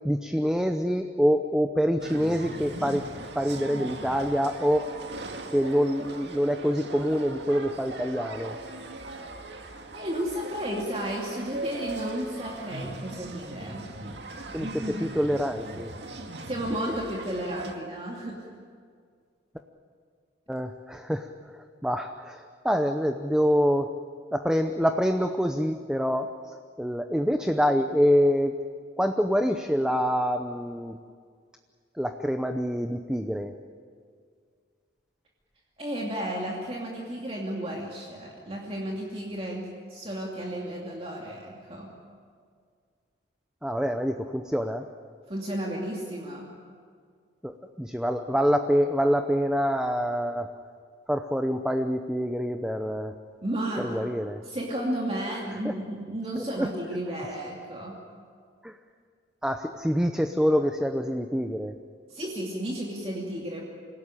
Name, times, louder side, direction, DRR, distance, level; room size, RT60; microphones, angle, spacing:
voice 1, 0.0-3.1 3.3-4.9 5.5-8.6 14.5-15.9 20.5-23.9 24.3-28.6 29.0-31.0 32.0-33.5 43.6-44.9 47.4-50.5 51.1-53.1 53.8-54.4 55.6-55.7 56.4-56.7 58.6-58.8 59.4-61.8, equal, 5° right, 6 dB, 0.7 m, -26 dB
sound 1, 2.0-17.7, right 2 dB, 70° right, 2.1 m, -39 dB
voice 2, 9.9-13.9 14.6-15.1 16.4-18.5 35.8-41.9 45.3-46.5 53.4-53.9 54.4-58.0 62.1-63.6, right 1 dB, 30° right, -2 dB, 2.6 m, -33 dB
27.0 x 17.0 x 10.0 m, 2.1 s
head